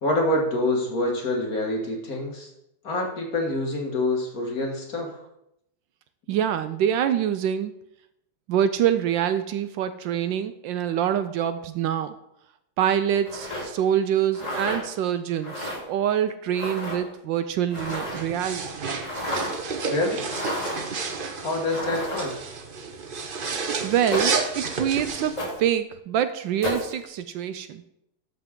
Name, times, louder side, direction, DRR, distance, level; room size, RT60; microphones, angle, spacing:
voice 1, 0.0-2.5 2.8-5.2 19.9-20.3 21.4-22.4, left 1 dB, 50° left, 0 dB, 2.1 m, -26 dB
voice 2, 6.3-7.7 8.5-12.2 12.8-18.8 23.8-25.3 25.6-27.9, right 9 dB, 75° right, 11 dB, 1.2 m, -25 dB
sound 1, 13.2-13.6 14.3-14.8 15.4-15.8 16.5-17.0 17.7-18.3 19.0-19.5 20.3-20.9 21.7-22.4 24.1-24.4 25.4-25.6 26.6-26.9, equal, 20° left, 3.6 m, -31 dB
sound 2, 17.8-25.4, right 5 dB, 60° right, 0.5 m, -31 dB
13.0 x 5.8 x 3.7 m, 0.79 s
omnidirectional pair, 2.2 m